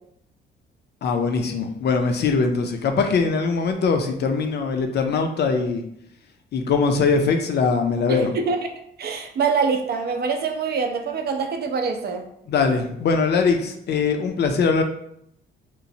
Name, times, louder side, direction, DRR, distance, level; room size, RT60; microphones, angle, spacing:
voice 1, 1.0-5.8 6.5-8.3 12.5-14.8, left 4 dB, 55° left, 5 dB, 0.5 m, -21 dB
voice 2, 8.1-8.7 9.0-12.2, right 5 dB, 55° right, 6 dB, 0.4 m, -25 dB
3.0 x 2.0 x 2.6 m, 0.73 s
cardioid pair, 90°, 20 cm